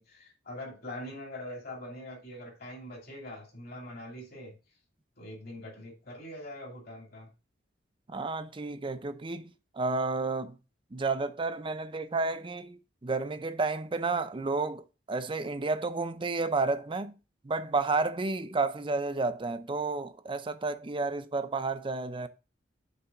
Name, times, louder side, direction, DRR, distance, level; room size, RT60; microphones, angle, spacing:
voice 1, 0.0-4.5 5.2-7.3, left 1 dB, 60° left, 2.6 m, -43 dB
voice 2, 8.1-10.5 10.9-17.1 17.4-22.3, right 3 dB, 30° right, 0.5 m, -31 dB
6.7 x 3.4 x 5.8 m
head